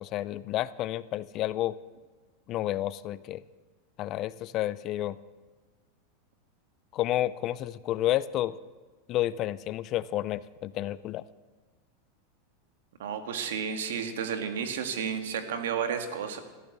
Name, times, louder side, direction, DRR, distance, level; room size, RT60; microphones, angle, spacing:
voice 1, 0.0-1.8 2.5-3.4 4.0-5.2 6.9-8.6 9.1-11.2, left 14 dB, 40° left, 17 dB, 0.5 m, -30 dB
voice 2, 13.0-16.4, right 7 dB, 85° right, 7 dB, 1.7 m, -32 dB
14.0 x 12.0 x 6.7 m, 1.3 s
supercardioid pair, 130°, 0 cm